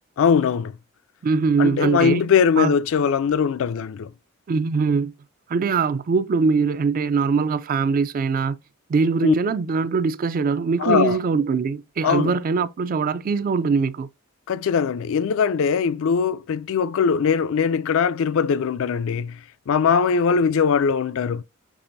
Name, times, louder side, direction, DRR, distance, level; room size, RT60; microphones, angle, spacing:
voice 1, 0.2-0.7 1.6-4.1 9.2-9.3 10.8-11.2 12.0-12.3 14.5-19.4 19.7-21.4, left 6 dB, 65° left, 0.4 m, -21 dB
voice 2, 1.2-2.2 2.6-2.7 4.5-5.1 5.5-8.6 8.9-14.1, right 5 dB, 40° right, 0.3 m, -22 dB
6.1 x 3.3 x 2.6 m
head